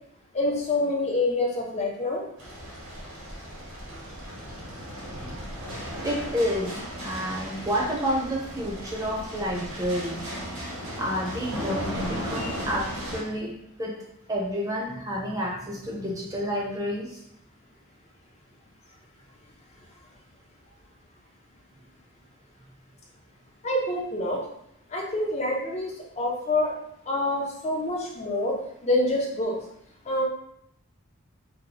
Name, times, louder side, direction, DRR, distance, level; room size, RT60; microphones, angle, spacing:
voice 1, 0.3-2.2 12.4-12.6 23.6-24.4 24.9-26.7 27.1-29.5 30.1-30.2, left 2 dB, 30° left, -1 dB, 0.6 m, -27 dB
sound 1, 2.4-13.2, equal, 85° right, 1.1 m, -36 dB
voice 2, 5.9-10.3 11.0-13.5 13.8-13.9 14.3-17.2, equal, 15° right, -3 dB, 0.6 m, -29 dB
2.9 x 2.2 x 3.8 m, 0.75 s
head